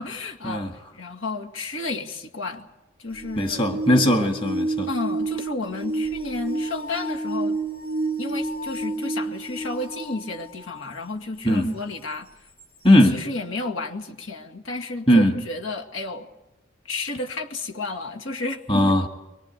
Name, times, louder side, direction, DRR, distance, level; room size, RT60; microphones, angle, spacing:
voice 1, 0.0-2.7 3.0-3.6 4.0-4.3 4.9-7.6 8.2-12.5 13.0-16.3 16.8-18.8, left 2 dB, 80° left, 3 dB, 2.1 m, -32 dB
sound 1, 3.1-10.8 11.5-11.6 12.6-12.7, right 2 dB, 40° left, 5.4 m, -30 dB
voice 2, 3.4-4.9 11.5-11.8 12.8-13.2 15.1-15.3 18.7-19.1, equal, 25° left, 5 dB, 1.9 m, -19 dB
23.5 x 22.0 x 8.2 m, 0.98 s
head